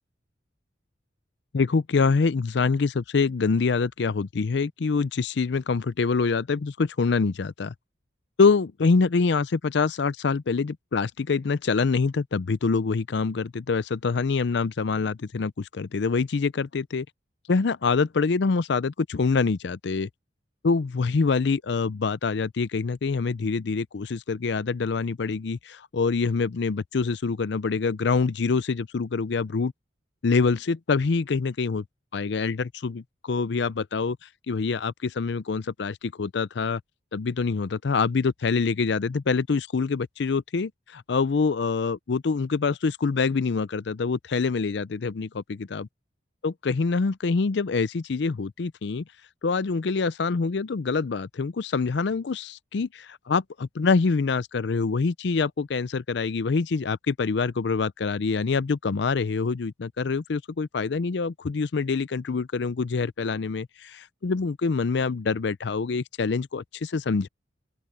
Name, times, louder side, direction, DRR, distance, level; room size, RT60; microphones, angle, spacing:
voice 1, 1.5-7.7 8.4-17.1 17.5-20.1 20.6-29.7 30.2-31.8 32.1-34.2 34.5-36.8 37.1-45.9 46.4-49.0 49.4-67.3, left 4 dB, 60° left, 0.5 m, -25 dB
open air
head